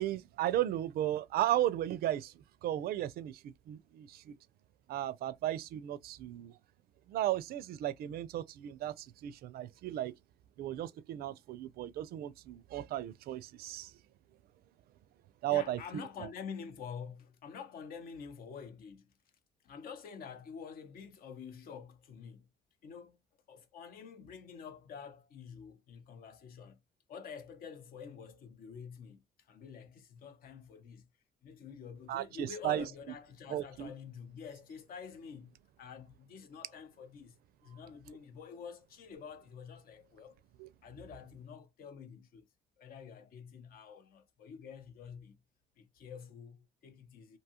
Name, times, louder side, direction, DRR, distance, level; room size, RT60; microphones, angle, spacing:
voice 1, 0.0-4.3 4.9-6.5 7.1-10.1 10.6-13.9 15.4-16.1 32.1-32.8 33.5-33.9 40.6-40.7, right 13 dB, 65° right, 0.4 m, -35 dB
voice 2, 15.5-19.1 19.6-22.5 22.8-23.2 23.5-26.8 27.1-31.1 31.4-37.4 37.6-40.4 40.8-42.5 42.8-45.4 45.8-47.4, left 6 dB, 60° left, 0.7 m, -48 dB
2.7 x 2.3 x 2.8 m
cardioid pair, 110°, 17 cm